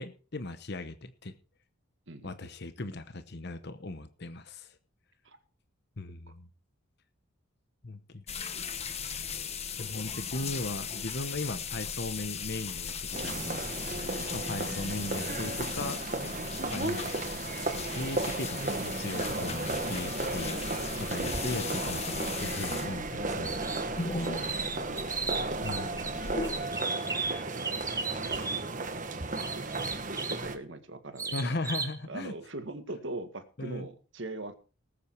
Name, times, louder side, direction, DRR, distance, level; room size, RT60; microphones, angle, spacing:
voice 1, 0.0-1.3 2.2-4.8 6.0-6.5 7.8-8.2 9.8-13.6 14.0-16.0 16.6-17.2 17.7-20.6 21.0-23.5 25.6-26.2 31.3-32.3 33.6-33.9, left 2 dB, 50° left, 11 dB, 1.0 m, -38 dB
voice 2, 2.1-2.5 5.2-5.4 6.3-6.4 13.5-13.6 20.4-21.1 24.2-25.5 27.6-31.6 32.1-34.5, right 2 dB, 60° right, 8 dB, 1.8 m, -43 dB
sound 1, 8.3-26.5, left 5 dB, 30° left, 1.2 m, -38 dB
sound 2, 13.1-30.5, right 2 dB, 35° right, 1.4 m, -34 dB
sound 3, 23.4-23.9 24.2-26.1 26.4-28.6 29.4-30.4 31.2-32.0, right 4 dB, 15° right, 1.3 m, -35 dB
19.0 x 8.6 x 4.6 m, 0.37 s
head